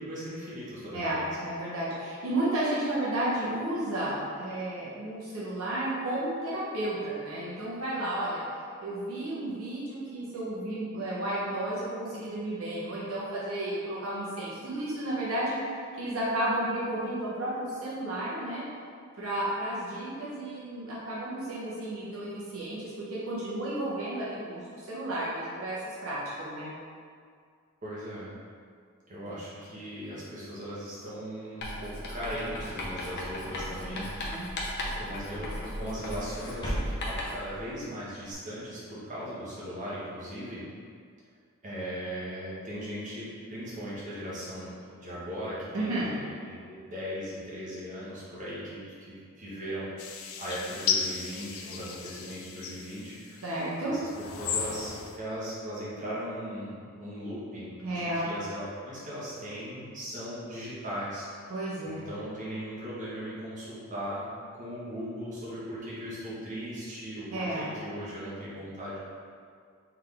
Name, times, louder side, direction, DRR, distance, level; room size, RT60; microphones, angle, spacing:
voice 1, 0.0-1.3 27.8-28.3 29.1-34.3 34.8-40.6 41.6-53.4 53.9-61.6 61.8-64.2 64.5-69.0, equal, 35° right, -9 dB, 1.3 m, -38 dB
voice 2, 0.9-8.4 8.8-18.6 19.2-22.9 23.3-26.7 34.2-34.5 45.7-46.1 53.4-53.9 57.8-58.3 61.5-62.0 67.3-67.6, right 1 dB, 70° right, -8 dB, 0.9 m, -32 dB
Writing, 31.6-37.5, left 1 dB, 50° left, 0.7 m, -37 dB
sound 1, 32.2-38.3, equal, 20° left, 0.9 m, -40 dB
sound 2, 50.0-53.5 54.1-55.2, left 6 dB, 75° left, 0.4 m, -34 dB
3.9 x 3.6 x 3.4 m, 2.2 s
head